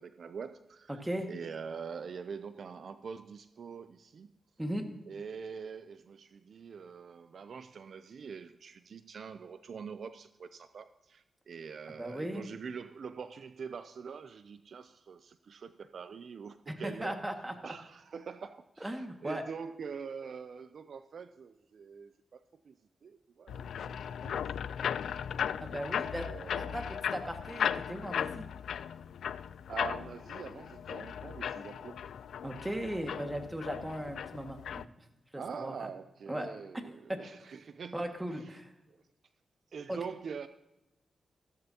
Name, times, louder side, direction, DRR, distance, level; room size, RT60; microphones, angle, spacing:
voice 1, 0.0-1.0 1.3-4.3 5.1-17.2 17.6-24.9 25.8-26.8 29.7-32.1 35.4-38.6 38.9-39.0 39.7-40.5, right 6 dB, 70° right, 12 dB, 0.5 m, -44 dB
voice 2, 12.0-12.5 16.7-17.5 18.8-19.4 25.6-26.3 26.6-28.5 32.4-34.9 35.3-35.7 36.3-36.5 37.1-37.2 37.9-38.7 39.9-40.0, right 1 dB, 15° right, 4 dB, 1.9 m, -37 dB
sound 1, 23.5-34.8, left 8 dB, 90° left, 0.3 m, -37 dB
15.0 x 14.0 x 2.9 m, 0.96 s
cardioid pair, 75°, 0 cm